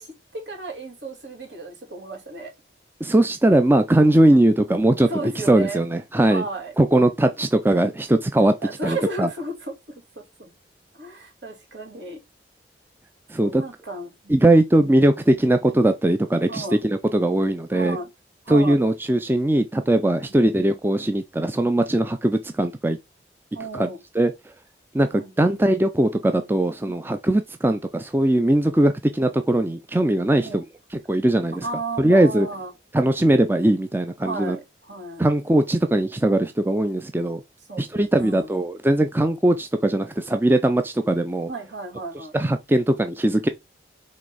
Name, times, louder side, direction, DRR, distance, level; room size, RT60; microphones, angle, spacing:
voice 1, 0.0-2.5 5.1-5.8 6.3-6.7 8.6-10.5 11.0-12.2 13.4-14.9 16.5-16.8 17.7-18.1 18.4-18.8 20.2-20.4 23.5-24.0 25.1-25.4 30.4-30.6 31.6-32.7 34.2-35.3 37.7-38.6 41.5-42.3, right 2 dB, 75° right, 3.2 m, -34 dB
voice 2, 3.0-5.1 5.5-6.4 6.8-8.5 8.8-9.3 13.3-13.6 14.3-18.0 18.5-23.0 23.7-23.9 24.2-24.3 24.9-30.6 31.1-31.7 32.0-32.5 32.9-34.6 35.2-37.4 37.8-41.5 42.3-43.5, right 1 dB, 10° right, 0.4 m, -20 dB
5.1 x 3.4 x 5.4 m
head